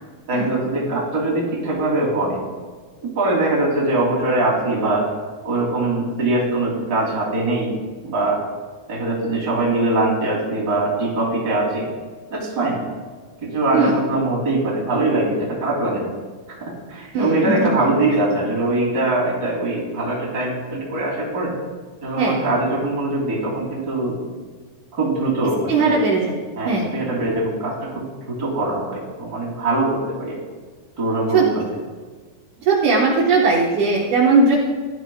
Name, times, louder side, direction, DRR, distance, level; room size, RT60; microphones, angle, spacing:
voice 1, 0.3-2.4 3.0-5.1 5.4-7.8 8.0-8.4 8.9-11.9 12.3-12.8 13.4-16.1 16.5-21.5 22.0-24.2 24.9-26.0 26.6-30.4 31.0-31.7, right 2 dB, 25° right, -5 dB, 2.6 m, -22 dB
voice 2, 17.1-17.7 22.2-22.4 25.7-26.3 26.7-26.9 31.3-31.4 32.7-34.6, right 4 dB, 75° right, -4 dB, 1.8 m, -18 dB
16.5 x 12.0 x 2.3 m, 1.4 s
omnidirectional pair, 5.3 m